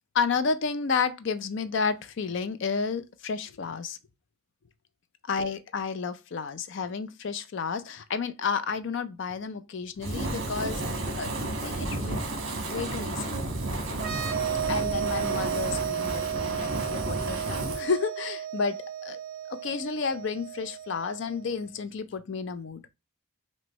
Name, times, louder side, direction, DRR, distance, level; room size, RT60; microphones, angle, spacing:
voice 1, 0.1-4.0 5.3-11.4 11.6-12.3 12.7-13.3 14.7-19.2 19.5-22.8, left 5 dB, 55° left, 0.4 m, -31 dB
Fire, 10.0-17.8, right 2 dB, 60° right, 1.1 m, -32 dB
sound 1, 13.9-21.5, right 9 dB, 45° right, 0.6 m, -33 dB
6.0 x 2.2 x 2.9 m
head